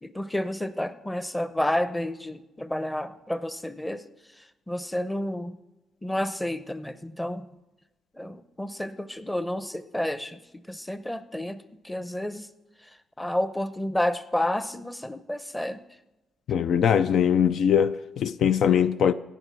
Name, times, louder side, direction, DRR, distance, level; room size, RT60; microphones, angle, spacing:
voice 1, 0.0-4.0 4.7-5.6 6.0-7.5 8.2-10.4 10.7-11.6 11.8-12.5 13.2-15.8, left 1 dB, 10° left, 0.8 m, -30 dB
voice 2, 16.5-19.1, left 8 dB, 65° left, 0.4 m, -21 dB
17.5 x 6.9 x 6.1 m
cardioid pair, 90°, 0 cm